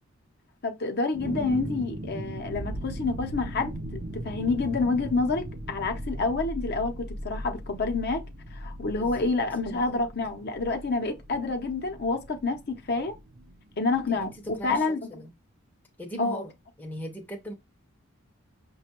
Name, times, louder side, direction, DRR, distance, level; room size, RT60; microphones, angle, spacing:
voice 1, 0.6-8.2 8.5-13.1 13.8-15.2 16.2-16.5, left 3 dB, 50° left, 0.7 m, -28 dB
sound 1, 1.1-14.8, right 1 dB, 35° right, 0.4 m, -39 dB
sound 2, 2.5-6.8, right 1 dB, 80° right, 0.6 m, -41 dB
voice 2, 8.9-9.3 14.1-15.3 16.0-16.5 16.8-17.5, equal, 10° left, 0.6 m, -39 dB
5.8 x 2.2 x 2.9 m
head